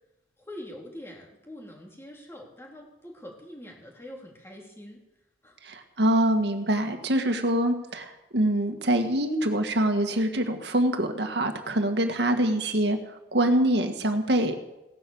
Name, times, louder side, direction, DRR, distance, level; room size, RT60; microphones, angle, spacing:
voice 1, 0.4-5.0 5.4-5.6, left 1 dB, 15° left, -1 dB, 3.2 m, -44 dB
voice 2, 5.6-13.0 13.3-14.6, right 1 dB, 70° right, 6 dB, 1.8 m, -24 dB
17.5 x 10.5 x 7.2 m, 0.95 s
head